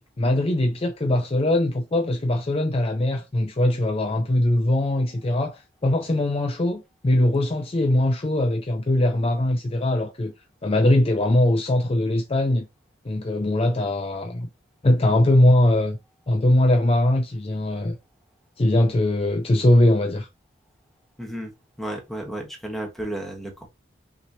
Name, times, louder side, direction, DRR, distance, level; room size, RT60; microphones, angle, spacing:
voice 1, 0.0-10.3 10.6-12.7 13.0-14.5 14.8-16.0 16.3-18.0 18.6-20.3, left 1 dB, 30° left, 0.5 m, -21 dB
voice 2, 21.2-21.5 21.8-23.7, right 1 dB, ahead, 1.3 m, -33 dB
6.0 x 3.1 x 2.7 m
head